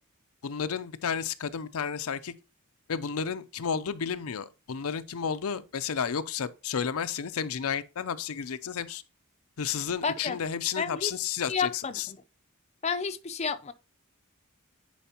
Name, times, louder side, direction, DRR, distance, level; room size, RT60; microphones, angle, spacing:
voice 1, 0.4-2.3 2.9-9.0 9.6-12.1, left 7 dB, 80° left, 0.5 m, -32 dB
voice 2, 10.0-10.4 10.8-11.1 11.5-12.2 12.8-13.7, left 5 dB, 30° left, 0.5 m, -31 dB
10.0 x 4.7 x 2.9 m
head